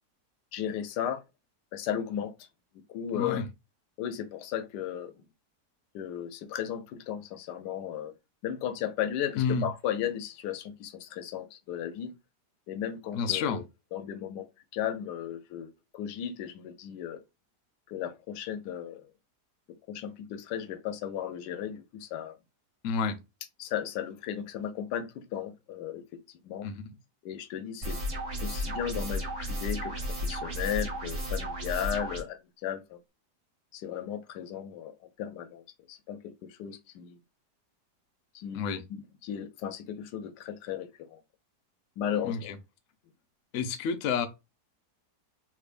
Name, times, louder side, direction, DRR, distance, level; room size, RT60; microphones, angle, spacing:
voice 1, 0.5-1.2 1.7-2.5 2.9-3.4 4.0-5.1 5.9-8.1 8.4-12.1 12.7-13.6 13.9-14.5 14.7-17.2 17.9-19.1 19.9-22.4 23.6-26.0 26.4-26.7 27.2-28.0 28.4-29.9 30.2-33.0 33.7-35.6 35.9-37.2 38.3-38.6 38.9-41.2 42.0-42.5, left 9 dB, 85° left, 1.2 m, -35 dB
voice 2, 3.1-3.5 9.4-9.7 13.1-13.6 22.8-23.2 26.6-26.9 38.5-38.8 42.2-42.6 43.5-44.3, left 6 dB, 65° left, 0.8 m, -29 dB
sound 1, 27.8-32.2, equal, 45° right, 1.7 m, -33 dB
3.4 x 3.1 x 2.4 m
omnidirectional pair, 1.8 m